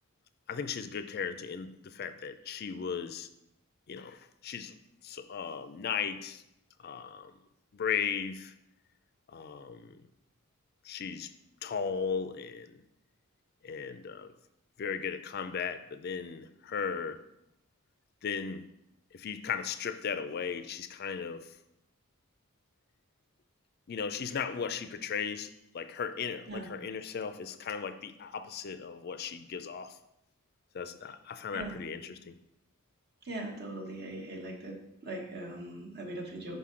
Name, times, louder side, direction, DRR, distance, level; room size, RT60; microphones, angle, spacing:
voice 1, 0.5-3.3 3.9-4.7 5.0-6.4 6.8-7.3 7.7-8.5 9.3-10.0 10.8-11.3 11.6-12.8 13.6-14.3 14.8-17.2 18.2-18.6 19.1-21.5 23.9-30.0 30.7-32.3, left 6 dB, 45° left, 11 dB, 0.4 m, -36 dB
voice 2, 33.3-34.8 35.0-36.6, right 1 dB, 45° right, 0 dB, 1.1 m, -40 dB
5.8 x 5.5 x 3.7 m, 0.84 s
head